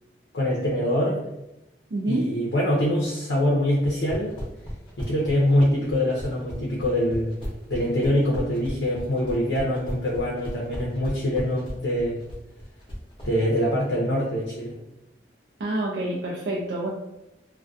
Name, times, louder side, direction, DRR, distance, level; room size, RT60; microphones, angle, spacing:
voice 1, 0.3-1.2 2.1-4.3 5.0-7.3 7.7-12.2 13.2-14.7, left 1 dB, 85° left, -4 dB, 0.5 m, -24 dB
voice 2, 1.9-2.3 15.6-16.9, right 1 dB, 65° right, -3 dB, 0.4 m, -27 dB
sound 1, 3.7-13.3, equal, 30° left, 0.7 m, -35 dB
2.2 x 2.1 x 2.5 m, 0.93 s
head